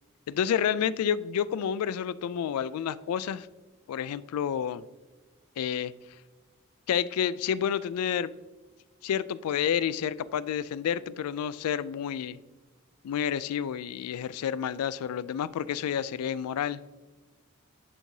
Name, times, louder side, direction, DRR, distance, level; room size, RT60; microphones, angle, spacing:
voice 1, 0.3-3.5 3.9-4.8 5.6-5.9 6.9-8.3 9.0-12.4 13.0-16.8, left 8 dB, 90° left, 17 dB, 0.3 m, -29 dB
11.0 x 4.6 x 2.7 m, 1.2 s
head